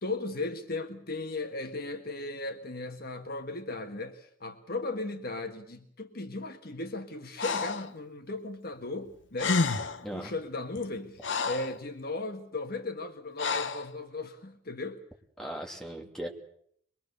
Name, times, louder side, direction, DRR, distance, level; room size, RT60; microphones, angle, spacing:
voice 1, 0.0-9.6 10.1-15.0, left 2 dB, 50° left, 1.5 m, -36 dB
Breathing, 7.4-7.9 9.1-9.2 9.4-10.1 10.7-11.8 13.4-13.9, left 4 dB, 75° left, 1.0 m, -30 dB
voice 2, 15.4-16.3, right 1 dB, 5° left, 2.8 m, -38 dB
23.5 x 21.5 x 6.7 m
head